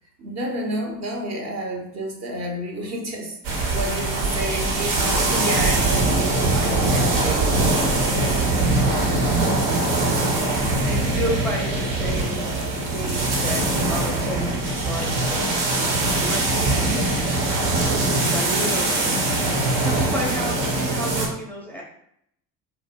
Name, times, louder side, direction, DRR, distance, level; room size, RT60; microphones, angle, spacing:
voice 1, 0.2-8.7 18.4-18.8, right 1 dB, 35° right, 1 dB, 0.7 m, -31 dB
sound 1, 3.4-21.3, right 2 dB, 70° right, 0.9 m, -22 dB
voice 2, 10.2-12.5 12.9-17.3 18.3-19.1 19.8-21.8, equal, 5° left, -4 dB, 0.5 m, -32 dB
2.9 x 2.0 x 3.5 m, 0.73 s
figure-of-eight pair, 60°, 48 cm